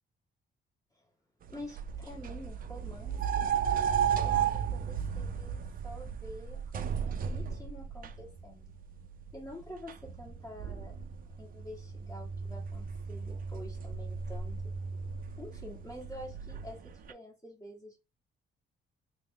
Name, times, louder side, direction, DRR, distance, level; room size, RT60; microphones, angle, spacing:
sound 1, 1.4-17.1, right 7 dB, 45° right, 0.4 m, -35 dB
voice 1, 1.5-3.5 4.2-8.7 9.3-10.9 11.4-14.7 15.4-18.0, left 1 dB, 15° left, -4 dB, 1.6 m, -48 dB
3.1 x 2.2 x 3.3 m, 0.28 s
cardioid pair, 90°, 20 cm